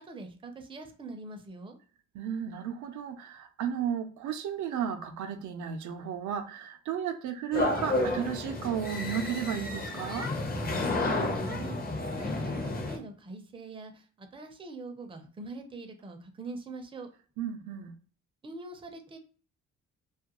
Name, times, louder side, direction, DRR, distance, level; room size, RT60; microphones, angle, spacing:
voice 1, 0.1-1.8 11.1-11.8 12.2-17.1 18.4-19.2, right 3 dB, 15° right, 0.5 m, -43 dB
voice 2, 2.1-10.3 17.4-18.0, right 8 dB, 75° right, 0.5 m, -34 dB
sound 1, 7.5-13.0, left 2 dB, 30° left, 0.6 m, -31 dB
2.3 x 2.1 x 2.9 m
cardioid pair, 90°, 30 cm